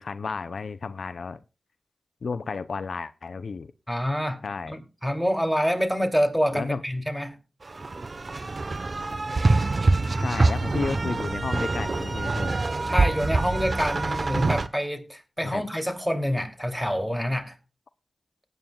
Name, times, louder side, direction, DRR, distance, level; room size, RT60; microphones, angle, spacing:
voice 1, 0.0-1.4 2.2-3.7 4.4-4.7 6.5-6.8 10.2-12.6 15.4-15.7, left 4 dB, 75° left, 0.5 m, -32 dB
voice 2, 3.9-7.4 12.9-17.6, equal, 5° right, 2.7 m, -27 dB
sound 1, 7.7-14.7, right 3 dB, 50° right, 0.8 m, -25 dB
18.5 x 9.2 x 2.3 m
cardioid pair, 45°, 0 cm